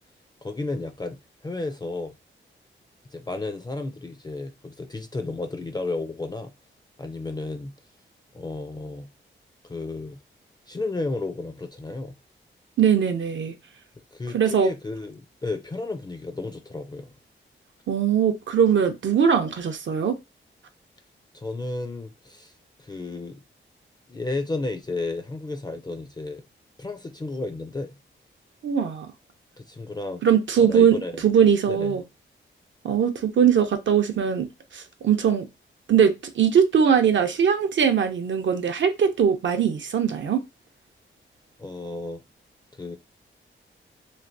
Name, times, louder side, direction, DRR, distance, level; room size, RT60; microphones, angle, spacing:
voice 1, 0.4-1.2 1.4-2.1 3.1-6.5 7.0-7.8 8.3-9.1 9.6-10.2 10.7-12.2 14.1-17.2 21.3-22.5 22.8-23.4 24.1-26.4 26.8-28.0 29.6-30.2 30.6-31.2 31.7-32.0 41.6-42.2 42.7-43.0, left 2 dB, 20° left, 0.4 m, -32 dB
voice 2, 12.8-13.5 14.3-14.7 17.9-20.2 28.6-29.1 30.2-31.0 31.2-32.0 32.8-35.5 35.9-40.4, right 7 dB, 65° right, 0.5 m, -21 dB
3.1 x 2.5 x 2.6 m
cardioid pair, 75°, 21 cm